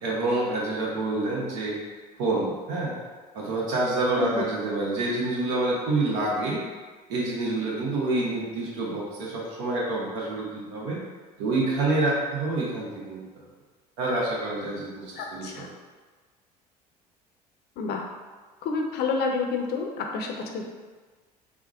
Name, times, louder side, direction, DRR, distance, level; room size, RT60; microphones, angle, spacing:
voice 1, 0.0-1.8 2.2-3.0 3.3-6.6 7.1-11.0 11.4-13.2 14.0-15.7, right 2 dB, 65° right, -5 dB, 1.0 m, -27 dB
voice 2, 15.2-15.7 17.8-18.0 18.6-20.6, left 4 dB, 55° left, 2 dB, 0.6 m, -29 dB
3.6 x 2.1 x 3.6 m, 1.4 s
hypercardioid pair, 65°, 21 cm